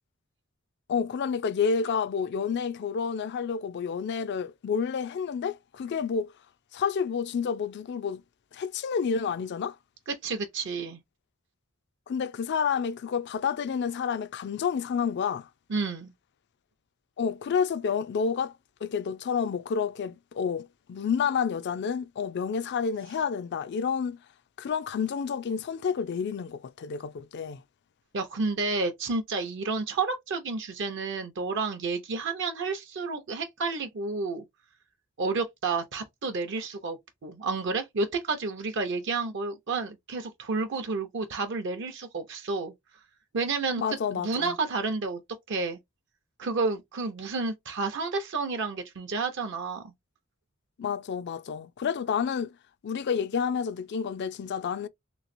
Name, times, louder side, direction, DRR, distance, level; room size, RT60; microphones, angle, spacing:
voice 1, 0.9-6.3 6.7-8.2 8.5-9.8 12.1-15.5 17.2-24.2 24.6-27.6 43.8-44.5 50.8-52.5 52.8-54.9, left 6 dB, 55° left, 0.4 m, -29 dB
voice 2, 10.2-11.0 15.7-16.1 28.1-34.4 35.2-42.7 43.3-45.2 45.5-45.8 46.4-49.9, right 4 dB, 60° right, 0.6 m, -30 dB
3.2 x 3.0 x 2.5 m
head